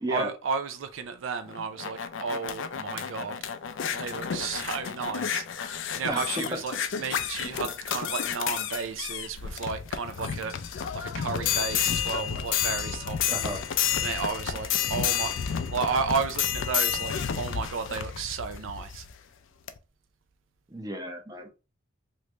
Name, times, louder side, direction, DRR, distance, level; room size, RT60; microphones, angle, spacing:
voice 1, 0.1-3.4 3.9-10.6 10.9-13.4 14.0-19.0, right 5 dB, 75° right, 0.5 m, -33 dB
sound 1, 1.5-19.1 19.7-19.8, left 8 dB, 70° left, 0.4 m, -31 dB
voice 2, 6.1-6.4 13.3-13.6 20.7-21.5, right 1 dB, 20° right, 0.6 m, -33 dB
3.1 x 2.5 x 3.1 m
head